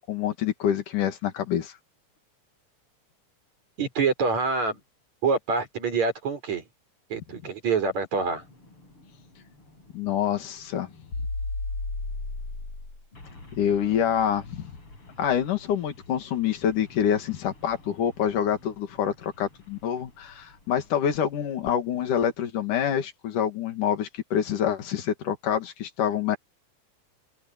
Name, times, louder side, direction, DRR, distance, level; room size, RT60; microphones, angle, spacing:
voice 1, 0.0-1.8 9.9-10.9 13.5-14.7 15.2-26.4, left 9 dB, 85° left, 3.7 m, -26 dB
voice 2, 3.8-4.8 5.2-6.6 7.1-8.4, right 4 dB, 60° right, 6.3 m, -26 dB
sound 1, 8.3-20.9, left 2 dB, 45° left, 8.1 m, -39 dB
open air
omnidirectional pair, 3.5 m